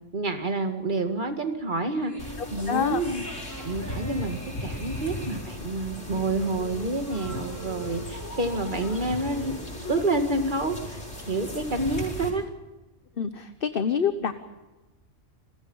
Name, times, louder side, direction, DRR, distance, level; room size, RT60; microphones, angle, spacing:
voice 1, 0.0-3.2 3.6-11.0 11.3-12.5, right 2 dB, 40° right, 7 dB, 2.1 m, -28 dB
sound 1, 2.0-10.6, equal, 15° left, 6.3 m, -44 dB
sound 2, 2.2-12.3, left 1 dB, 75° left, 6.5 m, -37 dB
voice 2, 2.7-3.0 13.2-14.3, left 7 dB, 50° left, 10 dB, 1.1 m, -26 dB
29.0 x 21.0 x 5.6 m, 1.1 s
omnidirectional pair, 1.3 m